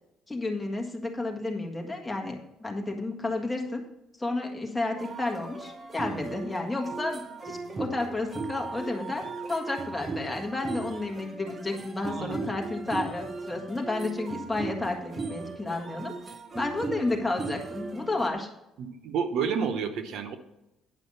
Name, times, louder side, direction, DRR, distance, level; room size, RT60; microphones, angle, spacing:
voice 1, 0.3-3.8 4.2-16.1 16.5-18.5, left 2 dB, 10° left, 1 dB, 1.6 m, -31 dB
sound 1, 5.0-18.3, right 3 dB, 30° right, 0.9 m, -37 dB
voice 2, 18.8-20.4, right 6 dB, 70° right, 8 dB, 0.9 m, -30 dB
9.9 x 5.6 x 5.5 m, 0.90 s
cardioid pair, 120°, 0 cm